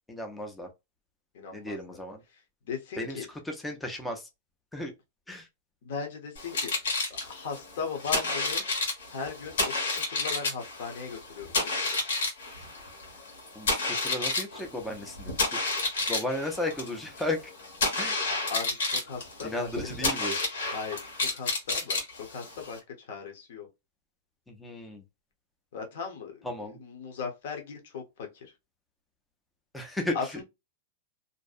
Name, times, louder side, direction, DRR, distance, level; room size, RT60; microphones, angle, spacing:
voice 1, 0.1-0.7 1.5-2.2 3.0-3.2 3.5-4.2 4.7-4.9 5.3-5.4 13.6-15.3 16.1-17.4 18.0-18.2 19.4-20.3 24.6-25.0 26.4-26.8 29.7-30.2, left 1 dB, 5° left, 0.4 m, -34 dB
voice 2, 1.3-1.8 2.7-3.3 5.8-6.7 7.1-8.6 9.1-11.7 18.5-19.8 20.7-22.0 22.3-22.8 23.1-23.7 25.7-28.3 30.1-30.4, left 5 dB, 50° left, 0.8 m, -38 dB
sound 1, 6.4-22.8, left 3 dB, 80° left, 1.3 m, -31 dB
2.6 x 2.1 x 2.4 m
supercardioid pair, 175°, 0 cm